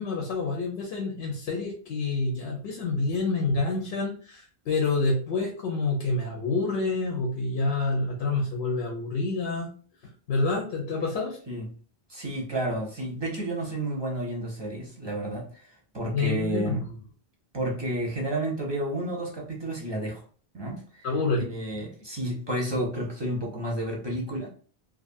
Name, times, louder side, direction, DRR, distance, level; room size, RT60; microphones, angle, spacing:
voice 1, 0.0-9.7 10.3-11.4 16.1-17.0 21.0-21.4, left 3 dB, 85° left, 1 dB, 0.9 m, -28 dB
voice 2, 12.1-16.8 17.5-20.2 20.5-21.1 21.4-24.5, right 1 dB, 35° right, -1 dB, 0.5 m, -31 dB
2.5 x 2.4 x 2.5 m, 0.41 s
omnidirectional pair, 1.0 m